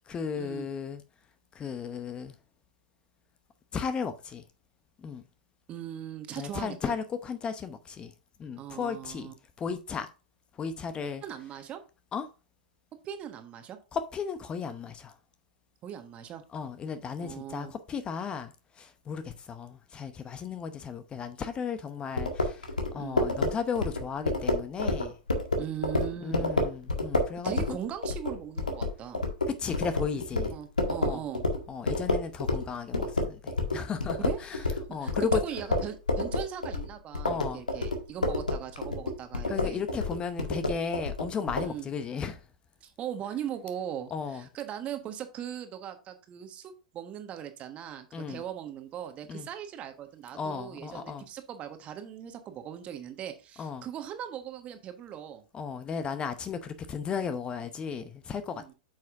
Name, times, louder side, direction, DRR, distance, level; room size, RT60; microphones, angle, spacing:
voice 1, 0.1-1.0 1.5-2.3 3.7-4.4 5.0-5.2 6.4-8.1 8.4-9.3 9.6-10.1 10.6-11.2 12.1-12.3 13.9-15.1 16.5-22.7 22.9-25.2 26.2-27.8 29.6-30.5 31.0-31.2 31.7-34.6 34.9-35.4 37.3-37.6 39.5-42.4 44.1-44.5 48.1-48.4 49.3-49.5 50.3-51.3 53.6-53.9 55.5-58.7, left 6 dB, 25° left, 0.7 m, -35 dB
voice 2, 5.7-7.0 8.6-9.3 11.2-11.8 13.0-13.8 15.8-16.4 17.2-17.7 22.9-23.2 25.5-26.5 27.4-29.2 30.5-31.4 34.2-34.7 35.0-39.8 41.5-41.9 42.8-55.4 58.5-58.7, right 10 dB, 30° right, 1.3 m, -39 dB
sound 1, 22.2-32.7 32.9-41.7, left 2 dB, 85° left, 1.7 m, -29 dB
8.5 x 6.2 x 2.5 m
figure-of-eight pair, 100°, 4 cm